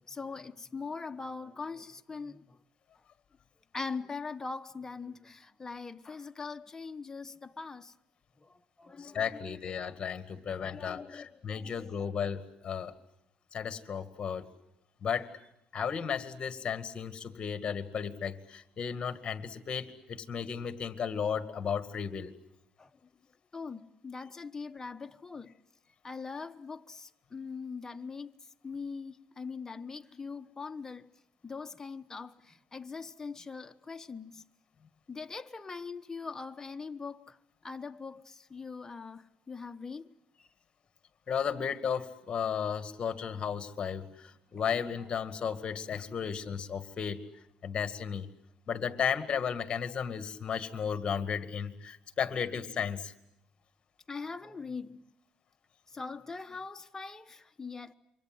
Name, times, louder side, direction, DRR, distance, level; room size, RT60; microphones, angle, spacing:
voice 1, 0.0-2.6 3.7-7.9 8.4-9.9 10.3-12.1 22.8-22.9 23.5-25.5 26.0-28.3 28.6-31.1 31.4-34.4 35.1-37.4 37.6-40.1 54.1-55.0 55.9-57.9, left 4 dB, 20° left, 1.1 m, -42 dB
voice 2, 9.0-12.9 13.5-14.5 15.0-15.3 15.7-22.3 41.3-47.2 47.6-48.3 48.7-53.1, left 7 dB, 40° left, 2.1 m, -34 dB
28.0 x 24.0 x 7.9 m
cardioid pair, 105°, 3 cm